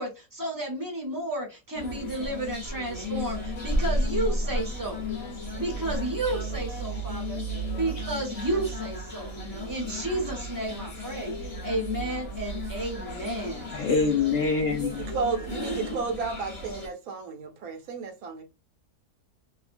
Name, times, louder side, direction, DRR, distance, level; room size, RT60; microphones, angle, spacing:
voice 1, 0.0-5.0 5.5-7.4 7.7-13.8, right 1 dB, 20° right, 0.6 m, -32 dB
sound 1, 1.7-16.9, equal, 30° left, 0.8 m, -33 dB
voice 2, 13.7-15.1, left 4 dB, 65° left, 0.7 m, -25 dB
voice 3, 14.7-18.4, right 5 dB, 70° right, 1.1 m, -33 dB
2.7 x 2.3 x 2.5 m
omnidirectional pair, 1.7 m